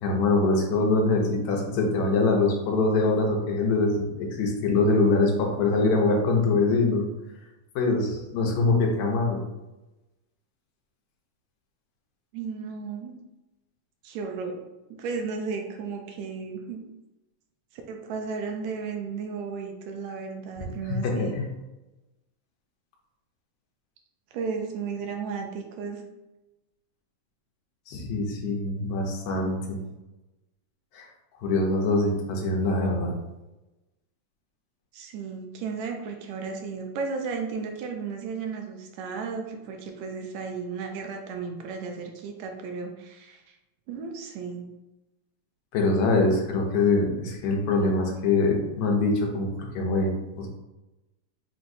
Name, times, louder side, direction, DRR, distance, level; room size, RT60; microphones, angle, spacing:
voice 1, 0.0-7.1 7.8-9.4 20.6-21.5 27.9-29.8 30.9-31.1 31.4-33.1 45.7-50.5, left 3 dB, 75° left, 1 dB, 2.1 m, -24 dB
voice 2, 12.3-13.1 14.0-14.6 14.9-16.8 17.7-21.3 24.3-26.0 34.9-43.6 43.9-44.7, right 5 dB, 80° right, 3 dB, 1.8 m, -34 dB
5.7 x 3.0 x 2.6 m, 1.0 s
omnidirectional pair, 3.3 m